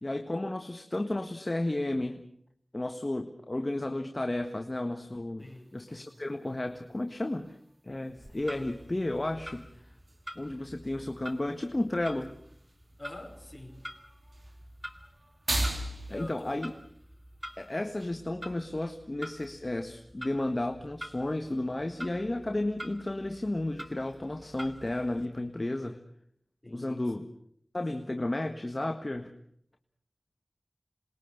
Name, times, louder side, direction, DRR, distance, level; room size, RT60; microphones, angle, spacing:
voice 1, 0.0-2.2 2.7-7.5 7.8-9.7 10.3-12.3 16.1-16.7 17.6-26.0 26.7-27.2 27.7-29.3, left 1 dB, 40° left, 6 dB, 1.5 m, -33 dB
voice 2, 5.4-5.8 13.0-13.8 16.1-16.7 26.6-27.3, left 1 dB, 20° left, 3 dB, 5.6 m, -46 dB
sound 1, 5.4-18.1, right 1 dB, 60° right, 4.3 m, -41 dB
Clock, 8.1-25.3, equal, 10° right, 2.4 m, -47 dB
27.0 x 21.0 x 6.6 m, 0.67 s
wide cardioid pair, 55°, 0 cm